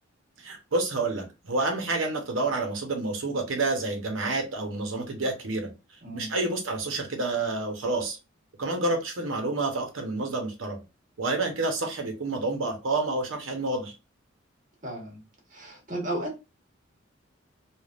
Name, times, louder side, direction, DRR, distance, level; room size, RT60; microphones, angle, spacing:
voice 1, 0.4-5.7 6.1-8.2 8.6-10.8 11.2-13.9, right 2 dB, 80° right, 0.8 m, -29 dB
voice 2, 6.0-6.3 14.8-15.2 15.5-16.4, right 1 dB, 40° right, 1.2 m, -34 dB
3.3 x 2.3 x 2.4 m
head